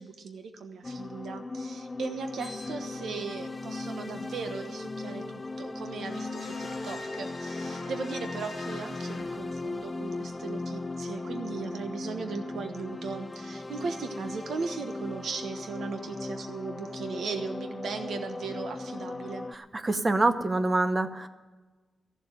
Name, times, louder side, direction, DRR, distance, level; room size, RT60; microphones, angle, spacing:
voice 1, 0.0-19.5, right 4 dB, 85° right, 6 dB, 1.2 m, -37 dB
sound 1, 0.8-19.6, left 2 dB, 20° left, 0.5 m, -37 dB
sound 2, 2.4-3.1 6.0-9.9, left 3 dB, 35° left, 2.6 m, -44 dB
voice 2, 19.7-21.3, right 2 dB, 25° right, 11 dB, 0.8 m, -25 dB
14.0 x 7.6 x 9.0 m, 1.3 s
wide cardioid pair, 155°, 0 cm